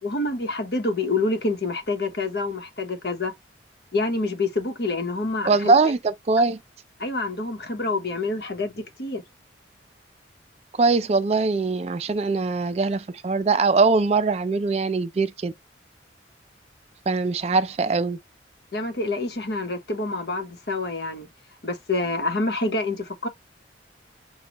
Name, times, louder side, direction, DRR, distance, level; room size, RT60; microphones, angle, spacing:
voice 1, 0.0-3.3 3.9-5.7 7.0-9.2 18.7-21.3 21.6-23.3, left 2 dB, 60° left, 0.9 m, -27 dB
voice 2, 5.5-6.6 10.8-15.5 17.1-18.2, right 4 dB, 35° right, 0.3 m, -22 dB
6.0 x 2.2 x 2.9 m
head